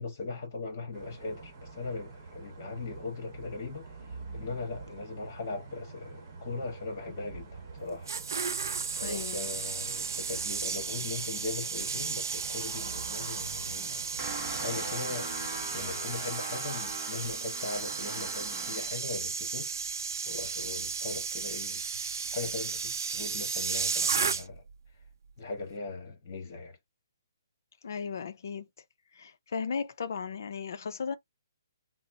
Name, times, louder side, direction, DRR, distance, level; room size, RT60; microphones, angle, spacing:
voice 1, 0.0-3.9 4.3-8.1 9.0-14.0 14.5-15.4 15.7-19.7 20.2-21.8 22.3-24.6 25.4-26.8, left 3 dB, 35° left, 1.3 m, -39 dB
sound 1, 0.9-16.3, right 4 dB, 30° right, 1.1 m, -46 dB
sound 2, 7.8-24.7 25.0-25.3, right 5 dB, 55° right, 0.5 m, -34 dB
voice 2, 8.9-9.5 27.8-28.7 29.1-31.2, left 6 dB, 50° left, 0.5 m, -36 dB
sound 3, 14.2-19.0, right 2 dB, 10° right, 0.7 m, -40 dB
4.0 x 2.0 x 2.7 m
hypercardioid pair, 175°, 2 cm